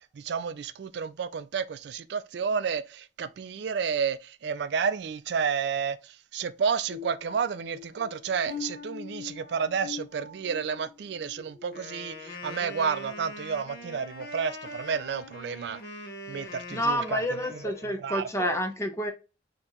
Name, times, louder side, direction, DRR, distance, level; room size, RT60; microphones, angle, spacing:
voice 1, 0.1-15.8 16.3-17.2 17.5-17.6 18.0-18.6, right 6 dB, 60° right, 0.3 m, -31 dB
sound 1, 6.9-12.5 13.0-13.3 13.8-14.0, left 6 dB, 35° left, 1.8 m, -43 dB
Wind instrument woodwind instrument, 11.7-18.0, left 1 dB, 50° left, 1.1 m, -42 dB
voice 2, 16.4-19.1, equal, 15° left, 0.6 m, -29 dB
4.3 x 2.9 x 3.7 m
head